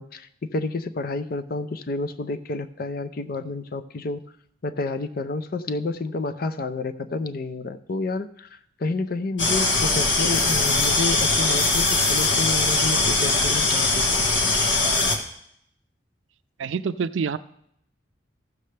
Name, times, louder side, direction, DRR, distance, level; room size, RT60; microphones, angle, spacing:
voice 1, 0.0-4.2 4.6-8.5 8.8-14.3, left 3 dB, 50° left, 10 dB, 0.5 m, -30 dB
sound 1, 9.4-15.2, left 3 dB, 80° left, 1.4 m, -21 dB
voice 2, 16.6-17.4, right 5 dB, 85° right, 12 dB, 0.4 m, -26 dB
14.5 x 6.6 x 3.3 m, 0.71 s
head